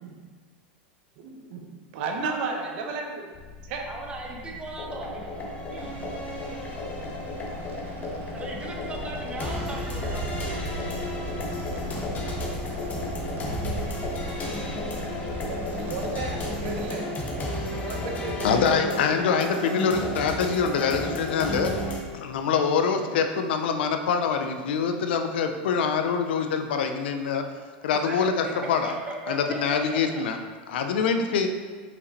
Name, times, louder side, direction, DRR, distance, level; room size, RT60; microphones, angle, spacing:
voice 1, 1.2-1.7 1.9-3.3 3.7-3.9 4.3-4.5 5.7-6.2 7.2-7.7 11.7-12.0 15.4-17.1 17.7-18.8, right 4 dB, 65° right, 3 dB, 1.0 m, -35 dB
voice 2, 2.2-2.6 3.9-5.3 5.7-5.9 8.3-10.8 27.9-30.2, right 2 dB, 20° right, -1 dB, 1.2 m, -37 dB
sound 1, 3.3-16.8, left 4 dB, 45° left, 0.9 m, -40 dB
sound 2, 4.8-22.0, left 1 dB, 30° left, 1.2 m, -33 dB
sound 3, 5.8-17.0, right 3 dB, 40° right, 1.2 m, -39 dB
voice 3, 18.4-21.7 22.1-27.5 27.8-28.9 29.3-30.4 30.7-31.5, left 6 dB, 80° left, 6 dB, 0.6 m, -25 dB
5.4 x 5.2 x 4.1 m, 1.5 s
supercardioid pair, 115°, 6 cm